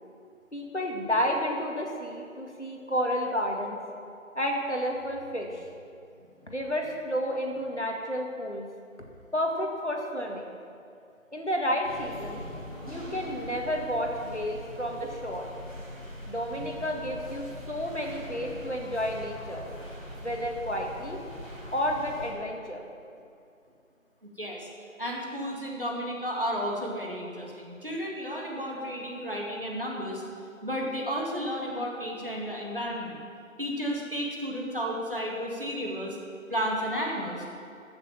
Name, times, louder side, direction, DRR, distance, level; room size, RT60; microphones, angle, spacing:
voice 1, 0.5-3.8 4.4-5.6 6.5-8.7 9.3-10.5 11.3-12.4 12.9-15.5 16.3-19.6 20.2-21.2 21.7-22.8, equal, 55° left, 1 dB, 2.0 m, -31 dB
sound 1, 11.8-22.3, left 1 dB, 25° right, 3.6 m, -42 dB
voice 2, 24.4-24.7 25.0-30.2 30.6-33.2 33.6-36.2 36.5-37.4, equal, 40° right, -2 dB, 2.2 m, -32 dB
14.5 x 6.7 x 7.2 m, 2.4 s
figure-of-eight pair, 180°, 40 cm